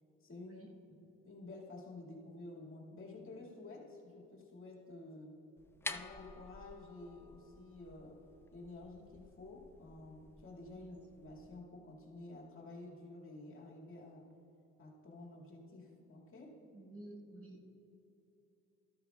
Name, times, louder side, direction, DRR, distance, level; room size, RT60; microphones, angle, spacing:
voice 1, 0.2-5.4 5.9-8.2 8.5-14.3 14.8-16.5, left 2 dB, 45° left, -2 dB, 2.2 m, -51 dB
sound 1, 5.6-11.5, left 3 dB, 10° left, 0.3 m, -50 dB
voice 2, 16.7-17.7, right 1 dB, 50° right, 0 dB, 1.6 m, -52 dB
13.0 x 12.5 x 2.4 m, 2.9 s
cardioid pair, 90°, 30 cm